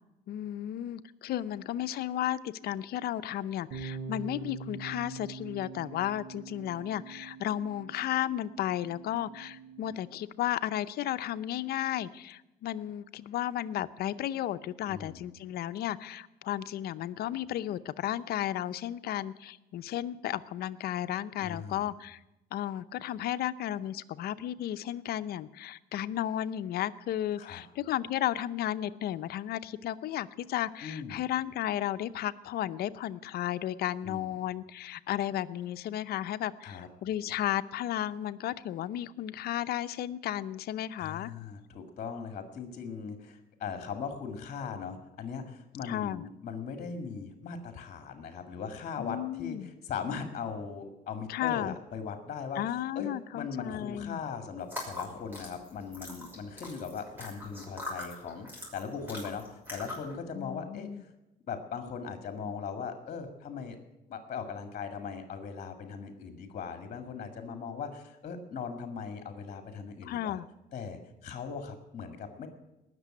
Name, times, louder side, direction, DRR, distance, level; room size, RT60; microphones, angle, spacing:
voice 1, 0.3-22.2 22.5-41.3 45.8-46.2 49.0-49.7 51.3-51.8 52.6-54.2 60.3-61.0 70.0-70.5, left 12 dB, 65° left, 14 dB, 0.7 m, -34 dB
sound 1, 3.7-10.0, right 4 dB, 60° right, 4.7 m, -44 dB
voice 2, 14.9-15.2 21.4-21.8 27.4-27.6 30.8-31.2 34.0-34.3 36.6-36.9 41.0-52.6 53.0-61.1 61.5-63.8 64.1-70.4 70.7-72.5, left 6 dB, 45° left, 7 dB, 2.0 m, -39 dB
sound 2, 54.6-60.1, left 2 dB, 10° right, 6.3 m, -42 dB
18.5 x 6.8 x 9.9 m, 0.96 s
cardioid pair, 110°, 17 cm